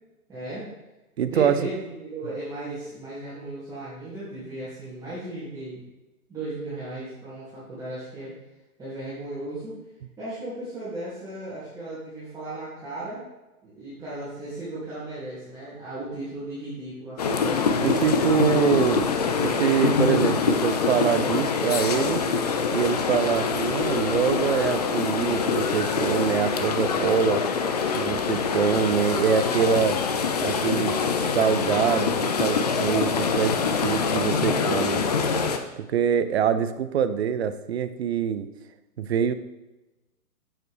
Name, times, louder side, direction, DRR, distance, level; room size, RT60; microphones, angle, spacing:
voice 1, 0.3-0.7 1.2-5.8 6.3-8.3 8.8-9.8 10.2-13.2 13.6-17.5 18.0-18.4, right 2 dB, 10° right, -12 dB, 2.6 m, -36 dB
voice 2, 1.2-1.6 17.8-19.1 19.3-22.2 22.7-27.4 28.0-30.0 30.4-31.0 31.3-35.0 35.8-38.5 39.0-39.3, right 8 dB, 45° right, 11 dB, 0.6 m, -24 dB
sound 1, 17.2-35.6, left 5 dB, 30° left, 0.5 m, -25 dB
9.0 x 7.8 x 3.3 m, 1.0 s
figure-of-eight pair, 130°, 45 cm